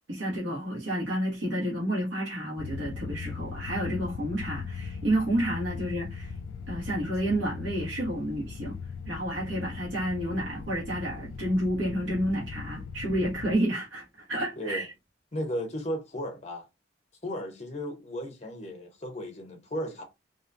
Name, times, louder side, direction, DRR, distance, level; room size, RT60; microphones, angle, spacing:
voice 1, 0.1-6.3 6.7-8.8 9.0-14.9, right 1 dB, 80° right, 1.0 m, -30 dB
sound 1, 2.6-13.6, left 5 dB, 90° left, 0.3 m, -39 dB
voice 2, 9.4-9.8 14.6-14.8 15.3-16.7 17.2-20.0, equal, 35° left, 0.8 m, -35 dB
2.8 x 2.1 x 2.5 m
head